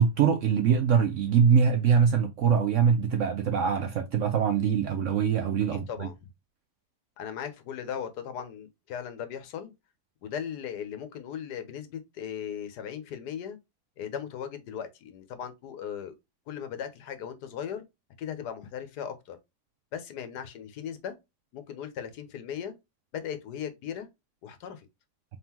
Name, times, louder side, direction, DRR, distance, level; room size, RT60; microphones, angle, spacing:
voice 1, 0.0-6.1, right 7 dB, 70° right, 0.7 m, -23 dB
voice 2, 5.7-6.3 7.2-9.7 10.2-13.6 14.0-16.2 16.5-17.8 18.2-19.4 19.9-21.1 21.5-22.7 23.1-24.1 24.4-24.9, left 8 dB, 80° left, 1.4 m, -37 dB
3.8 x 3.7 x 2.8 m
omnidirectional pair, 1.8 m